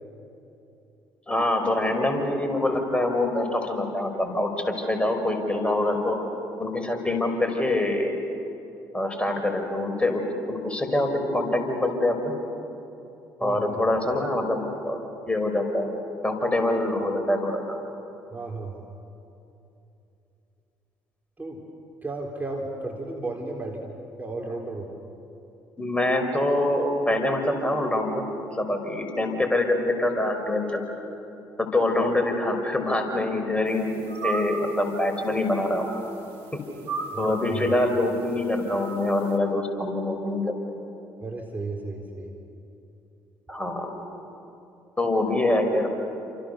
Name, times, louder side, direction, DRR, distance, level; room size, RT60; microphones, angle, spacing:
voice 1, 1.3-6.2 6.6-8.1 8.9-12.3 13.4-15.0 15.3-15.9 16.2-17.8 25.8-30.8 31.6-35.9 36.5-36.6 37.2-40.6 43.5-44.0 45.0-45.9, left 1 dB, 10° left, 4 dB, 5.7 m, -25 dB
voice 2, 13.4-13.7 18.3-18.8 21.4-21.6 22.0-23.9 24.2-24.9 37.1-37.8 41.2-42.3, right 2 dB, 20° right, 0 dB, 3.9 m, -34 dB
sound 1, 33.7-39.4, right 4 dB, 70° right, 3.3 m, -37 dB
29.5 x 27.5 x 7.0 m, 2.9 s
figure-of-eight pair, 50°, 10 cm